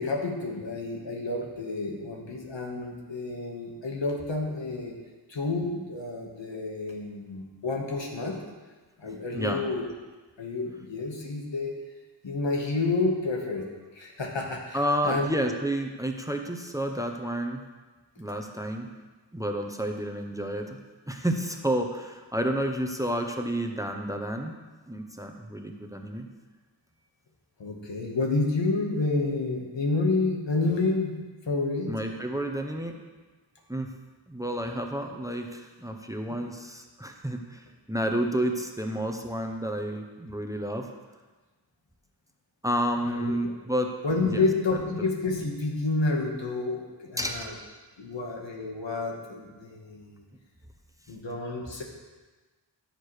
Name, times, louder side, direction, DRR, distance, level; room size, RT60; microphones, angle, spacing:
voice 1, 0.0-4.9 5.3-8.4 9.0-9.9 10.4-11.7 12.2-13.6 13.9-14.8 15.0-15.3 27.6-31.1 31.5-31.9 43.1-43.3 44.0-47.5 48.0-50.2 51.1-51.8, left 3 dB, 85° left, 0 dB, 1.6 m, -29 dB
voice 2, 9.0-9.6 14.7-17.6 18.2-18.9 19.3-20.8 21.1-24.5 24.9-26.3 31.9-33.0 33.7-33.9 34.3-40.9 42.6-43.9 44.2-44.4 45.0-45.1 47.2-47.5, right 1 dB, 10° right, 4 dB, 0.8 m, -30 dB
14.5 x 6.7 x 3.3 m, 1.3 s
wide cardioid pair, 70°, 43 cm